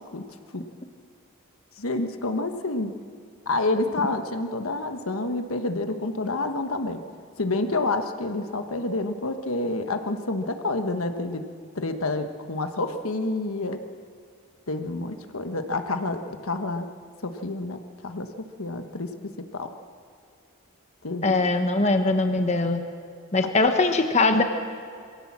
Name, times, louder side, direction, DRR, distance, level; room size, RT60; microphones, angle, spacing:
voice 1, 1.8-2.9 3.5-7.0 7.4-11.4 11.7-13.8 14.7-16.9 17.2-18.3 18.6-19.1 19.5-19.7 21.0-21.4 23.6-23.7, left 2 dB, 75° left, 7 dB, 1.3 m, -28 dB
voice 2, 21.2-22.8 23.3-24.4, left 3 dB, 30° left, 6 dB, 1.2 m, -21 dB
23.0 x 17.0 x 7.4 m, 2.3 s
head